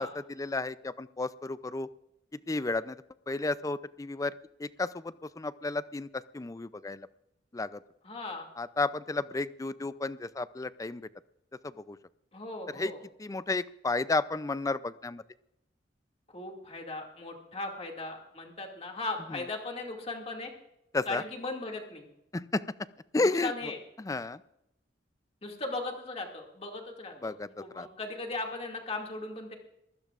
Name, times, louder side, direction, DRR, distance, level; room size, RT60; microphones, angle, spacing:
voice 1, 0.0-1.9 2.3-3.0 3.3-4.3 4.6-7.1 7.5-7.8 8.6-11.1 11.6-12.0 12.7-12.9 13.2-15.2 19.3-19.4 20.9-21.2 22.3-22.6 23.1-23.7 24.0-24.4 27.2-27.5 27.7-27.9, left 3 dB, 20° left, 15 dB, 0.4 m, -32 dB
voice 2, 8.0-8.5 12.3-13.0 16.3-20.5 21.1-22.1 23.2-23.8 25.4-29.6, left 2 dB, 35° left, 1 dB, 2.2 m, -38 dB
23.5 x 15.5 x 2.5 m, 0.85 s
head